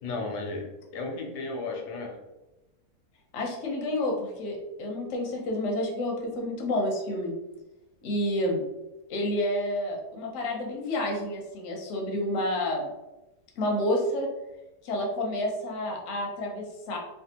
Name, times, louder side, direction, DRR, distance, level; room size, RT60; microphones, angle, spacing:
voice 1, 0.0-2.1, left 3 dB, 80° left, 2 dB, 1.2 m, -34 dB
voice 2, 3.3-7.3 8.0-8.6 9.1-12.9 13.6-14.3 14.8-17.0, left 1 dB, 60° left, 0 dB, 0.9 m, -29 dB
3.4 x 2.3 x 2.8 m, 1.0 s
omnidirectional pair, 1.7 m